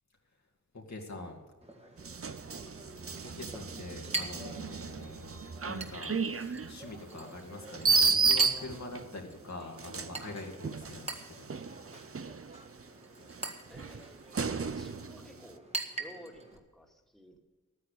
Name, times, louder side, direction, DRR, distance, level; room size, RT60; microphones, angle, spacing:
voice 1, 0.7-1.4 3.2-11.8, left 2 dB, 60° left, 0 dB, 2.4 m, -45 dB
Chink clink, 1.6-16.6, right 2 dB, 20° right, 2.0 m, -44 dB
sound 1, 2.0-9.1 9.8-12.8 13.3-15.3, right 4 dB, 45° right, 0.8 m, -32 dB
voice 2, 13.7-14.1 14.6-15.6 16.0-17.4, equal, ahead, 0 dB, 2.3 m, -53 dB
12.5 x 9.6 x 6.7 m, 1.3 s
wide cardioid pair, 55°, 31 cm